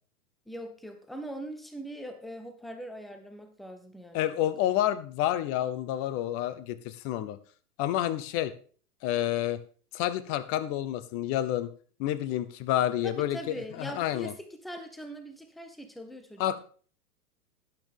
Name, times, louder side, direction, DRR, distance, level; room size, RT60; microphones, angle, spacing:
voice 1, 0.5-4.3 13.0-16.4, right 1 dB, ahead, 7 dB, 0.4 m, -41 dB
voice 2, 4.1-7.4 7.8-8.5 9.0-9.6 9.9-11.7 12.0-14.3 16.4-16.6, left 12 dB, 30° left, 14 dB, 0.8 m, -29 dB
12.0 x 8.9 x 3.5 m, 0.43 s
hypercardioid pair, 110°, 47 cm